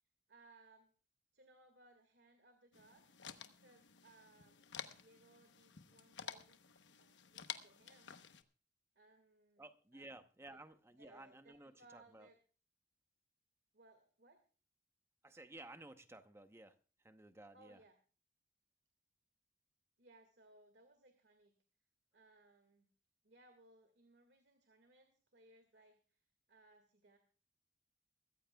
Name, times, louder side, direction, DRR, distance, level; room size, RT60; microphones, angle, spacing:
voice 1, 0.3-0.9 1.3-3.0 3.6-6.6 7.0-8.2 9.0-9.6 9.9-10.6 10.9-12.4 13.7-14.4 17.5-18.0 20.0-21.5 22.1-22.9 23.2-27.2, right 2 dB, 65° right, 1.9 m, -66 dB
sound 1, 2.7-8.4, left 8 dB, 85° left, 1.0 m, -52 dB
voice 2, 9.6-12.3 15.2-16.7 17.0-17.8, right 2 dB, 15° right, 0.8 m, -55 dB
23.0 x 14.5 x 2.3 m
head